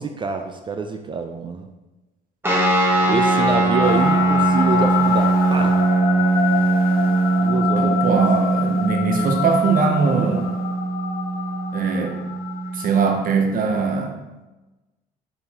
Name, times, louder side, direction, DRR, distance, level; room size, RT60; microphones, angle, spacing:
voice 1, 0.0-1.7 3.1-5.7 7.1-8.2, right 5 dB, 25° right, 5 dB, 0.3 m, -27 dB
sound 1, 2.4-13.3, right 2 dB, 10° right, 1.1 m, -21 dB
sound 2, 3.8-13.3, left 9 dB, 55° left, 0.5 m, -27 dB
voice 2, 7.8-10.5 11.7-12.2 12.7-14.1, right 5 dB, 50° right, 4 dB, 0.8 m, -21 dB
3.9 x 3.8 x 2.9 m, 1.1 s
supercardioid pair, 80°, 18 cm